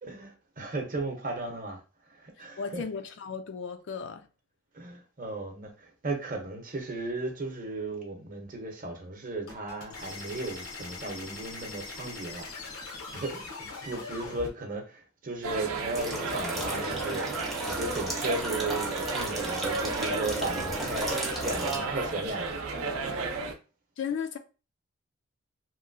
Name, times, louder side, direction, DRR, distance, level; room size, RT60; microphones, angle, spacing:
voice 1, 0.0-1.8 2.1-2.8 4.7-12.5 12.8-23.1, right 2 dB, 40° right, 0.7 m, -36 dB
voice 2, 2.4-4.3 24.0-24.4, left 6 dB, 55° left, 0.4 m, -35 dB
sound 1, 9.5-14.5, left 3 dB, 85° left, 0.9 m, -41 dB
sound 2, 15.4-23.5, right 3 dB, 75° right, 0.5 m, -33 dB
sound 3, 15.9-21.8, right 1 dB, ahead, 0.5 m, -34 dB
3.0 x 2.6 x 2.5 m
head